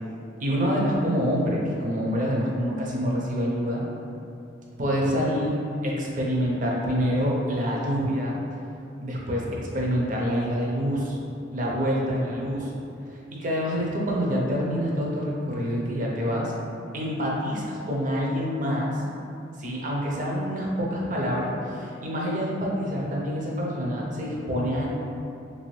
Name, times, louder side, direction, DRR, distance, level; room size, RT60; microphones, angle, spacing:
voice 1, 0.4-3.8 4.8-5.6 5.8-8.4 9.0-11.2 11.5-12.7 13.3-16.5 16.9-19.0 19.6-24.9, equal, 45° right, -3 dB, 0.5 m, -26 dB
3.3 x 2.6 x 3.1 m, 2.6 s
head